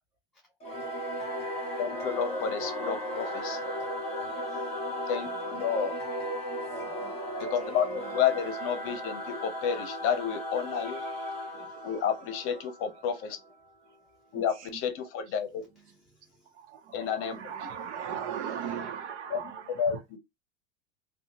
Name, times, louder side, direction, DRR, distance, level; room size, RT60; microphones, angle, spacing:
Singing / Musical instrument, 0.6-13.5, equal, 20° left, 1.1 m, -36 dB
voice 1, 1.8-3.7 5.1-5.9 7.4-11.0 11.8-13.4 14.3-15.6 16.9-17.4 17.6-17.7 19.3-19.4 19.8-20.2, left 7 dB, 40° left, 0.7 m, -30 dB
voice 2, 4.3-5.0 5.3-5.8 6.7-7.2 7.7-8.2 11.5-11.8 13.8-14.4 15.7-16.6 17.3-17.7 19.3-19.8, right 1 dB, ahead, 0.5 m, -56 dB
voice 3, 10.8-12.1 12.5-12.6 14.3-14.8 16.5-20.0, right 8 dB, 85° right, 0.9 m, -39 dB
2.7 x 2.3 x 2.9 m
supercardioid pair, 135°, 33 cm